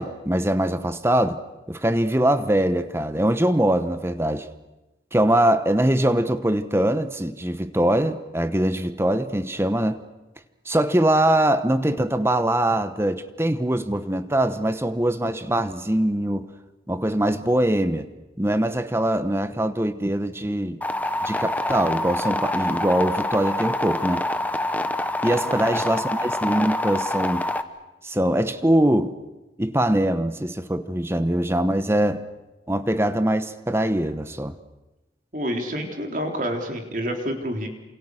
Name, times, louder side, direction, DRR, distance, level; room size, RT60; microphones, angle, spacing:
voice 1, 0.0-1.4 1.7-4.5 5.1-10.0 10.7-16.5 16.9-18.1 18.4-20.8 21.2-24.2 25.2-27.5 28.0-29.2 29.6-32.2 32.7-34.6, right 1 dB, 15° right, 1.0 m, -22 dB
sound 1, 20.8-27.6, left 1 dB, 10° left, 1.0 m, -26 dB
voice 2, 25.4-25.8 35.3-37.7, equal, 45° right, 3.8 m, -28 dB
28.5 x 27.5 x 6.5 m
head